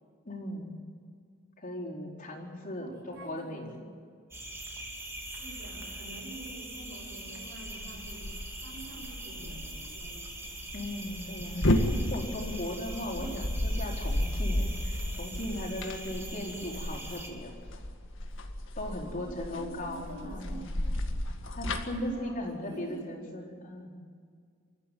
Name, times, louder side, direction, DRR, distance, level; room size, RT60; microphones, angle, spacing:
voice 1, 0.3-0.8 1.6-4.0 10.7-11.7 11.9-17.5 18.8-20.8 21.5-23.9, left 1 dB, 40° left, -2 dB, 4.6 m, -38 dB
voice 2, 2.6-3.8 5.3-8.3 8.6-10.3 13.1-13.5 19.0-20.7 21.9-23.3, right 1 dB, 60° right, 0 dB, 7.5 m, -46 dB
sound 1, 4.3-17.3, right 1 dB, 15° right, 3.3 m, -42 dB
sound 2, 7.6-21.8, left 1 dB, 65° left, 2.0 m, -33 dB
29.0 x 14.0 x 9.3 m, 2.1 s
head